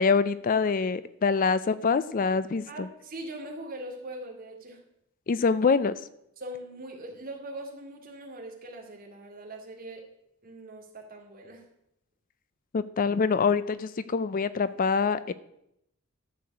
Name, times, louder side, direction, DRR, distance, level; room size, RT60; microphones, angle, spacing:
voice 1, 0.0-2.9 5.3-5.9 12.7-15.3, left 5 dB, 40° left, 15 dB, 0.4 m, -25 dB
voice 2, 2.7-4.8 6.4-10.0 10.4-11.7, right 1 dB, 40° right, 1 dB, 2.4 m, -41 dB
13.0 x 4.9 x 8.0 m, 0.79 s
head